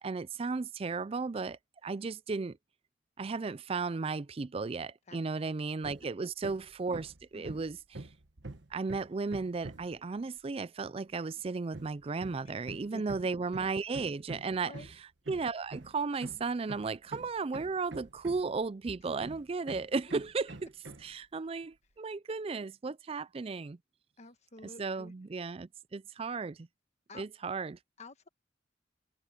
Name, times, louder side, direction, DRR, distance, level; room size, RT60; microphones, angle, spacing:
voice 1, 0.0-2.6 3.2-7.8 8.7-14.7 15.3-20.7 21.0-23.8 24.8-26.7 27.1-27.8, right 4 dB, 30° right, 0.4 m, -35 dB
voice 2, 5.1-5.5 6.0-6.1 7.3-7.6 12.9-13.0 13.5-13.7 14.6-14.9 24.2-25.1 27.1-27.2 28.0-28.3, left 2 dB, 40° left, 1.3 m, -50 dB
Hammer, 5.8-6.1 6.4-10.0 11.7-18.7 19.2-21.1, right 2 dB, 75° right, 1.4 m, -46 dB
head